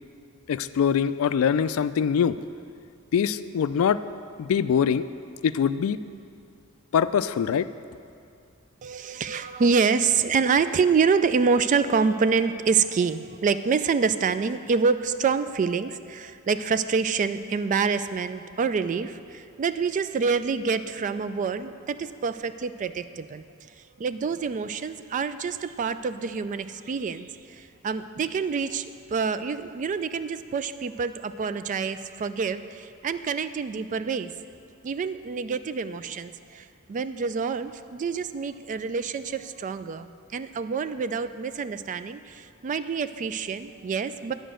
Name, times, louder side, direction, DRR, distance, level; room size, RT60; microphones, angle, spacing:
voice 1, 0.5-2.4 3.1-4.0 4.4-5.0 5.4-6.0 6.9-7.7, left 7 dB, 70° left, 14 dB, 0.3 m, -23 dB
voice 2, 8.8-23.4 24.0-27.3 27.8-34.3 34.8-44.3, right 5 dB, 35° right, 12 dB, 0.3 m, -26 dB
10.0 x 5.1 x 7.6 m, 2.4 s
head